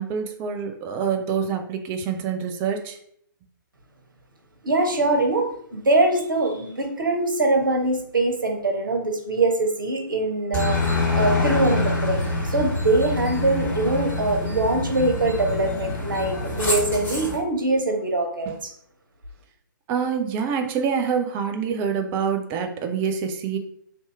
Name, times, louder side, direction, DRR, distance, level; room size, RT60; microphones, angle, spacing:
voice 1, 0.0-3.0 18.5-18.6 19.9-23.6, right 6 dB, 20° right, 5 dB, 0.5 m, -26 dB
voice 2, 4.6-18.7, right 2 dB, 65° right, 3 dB, 1.1 m, -23 dB
Aircraft, 10.5-17.4, left 2 dB, 15° left, 1.5 m, -26 dB
3.3 x 2.8 x 4.5 m, 0.66 s
figure-of-eight pair, 130°, 11 cm